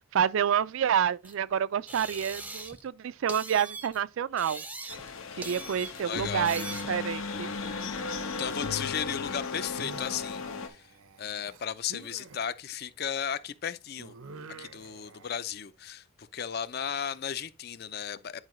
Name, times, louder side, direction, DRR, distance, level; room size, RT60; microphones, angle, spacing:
voice 1, 0.0-4.6 5.4-7.5, right 8 dB, 70° right, 0.3 m, -28 dB
sound 1, 1.2-1.3 1.9-2.9 3.3-4.0 4.4-5.1 5.4-6.0 6.4-7.0, right 3 dB, 10° right, 0.5 m, -41 dB
sound 2, 4.9-10.7, left 4 dB, 80° left, 1.0 m, -36 dB
voice 2, 5.3-6.5 8.4-10.9 11.2-14.1 14.6-18.4, left 8 dB, 45° left, 0.4 m, -35 dB
sound 3, 9.8-12.4 14.0-15.3, right 3 dB, 85° right, 0.7 m, -48 dB
9.7 x 4.7 x 3.1 m
head